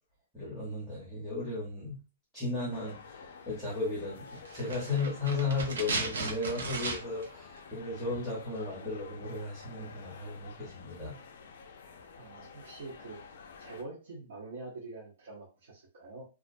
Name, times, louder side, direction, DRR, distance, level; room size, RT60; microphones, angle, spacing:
voice 1, 0.3-2.0 2.3-11.2, left 3 dB, ahead, -9 dB, 0.8 m, -35 dB
sound 1, 2.7-13.8, left 5 dB, 50° left, 0.4 m, -51 dB
sound 2, 4.5-7.3 7.6-7.7, right 3 dB, 90° right, 0.7 m, -36 dB
voice 2, 12.2-13.2 13.6-16.2, right 3 dB, 60° right, -5 dB, 0.8 m, -45 dB
2.4 x 2.1 x 2.6 m, 0.32 s
hypercardioid pair, 175°, 0 cm